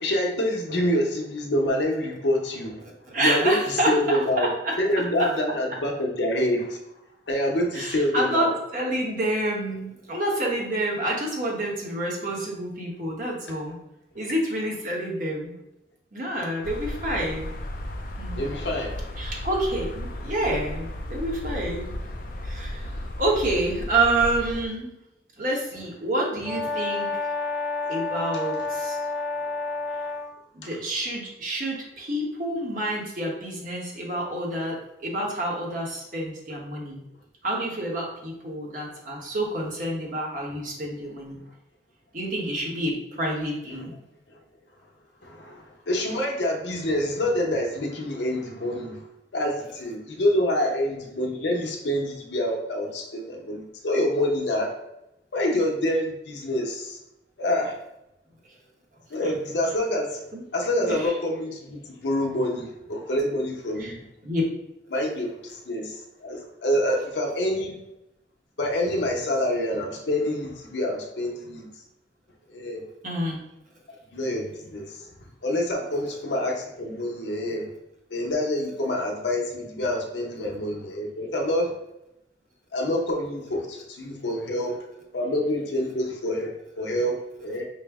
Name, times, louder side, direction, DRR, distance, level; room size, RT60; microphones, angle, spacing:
voice 1, 0.0-2.8 3.2-4.5 4.8-6.8 7.3-8.5 18.4-19.1 28.3-28.4 30.6-30.8 43.7-43.9 45.2-49.0 49.3-54.7 55.3-57.0 57.4-57.8 59.1-60.2 60.5-64.0 64.9-67.8 68.6-71.7 72.5-72.8 74.1-75.1 75.4-77.7 78.1-81.7 82.7-84.8 85.1-87.6, left 1 dB, 80° left, 1 dB, 0.7 m, -27 dB
voice 2, 3.1-4.8 7.7-13.8 14.1-15.5 16.1-17.5 18.2-18.4 19.2-22.0 22.4-24.9 25.4-27.1 27.9-29.0 30.5-37.0 37.4-41.4 42.1-43.9 59.2-59.3 60.3-60.4 60.8-61.1 63.8-64.0 64.2-64.4 73.0-73.4, right 1 dB, 45° right, -2 dB, 0.9 m, -28 dB
sound 1, 16.6-24.7, left 1 dB, 50° left, 0.4 m, -34 dB
Brass instrument, 26.4-30.3, left 4 dB, ahead, 0.6 m, -29 dB
4.8 x 2.1 x 3.4 m, 0.87 s
head